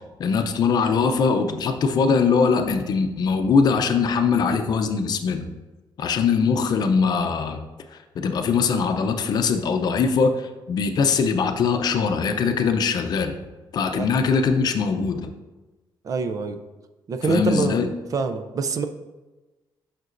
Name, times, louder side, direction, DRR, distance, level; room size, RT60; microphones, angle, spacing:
voice 1, 0.2-5.5 6.0-7.6 7.9-13.3 13.7-15.3 17.3-17.9, left 5 dB, 50° left, 6 dB, 0.6 m, -21 dB
voice 2, 16.0-16.6 17.1-17.8 18.1-18.9, right 4 dB, 40° right, 8 dB, 0.5 m, -25 dB
9.3 x 5.9 x 2.6 m, 1.2 s
cardioid pair, 170°, 9 cm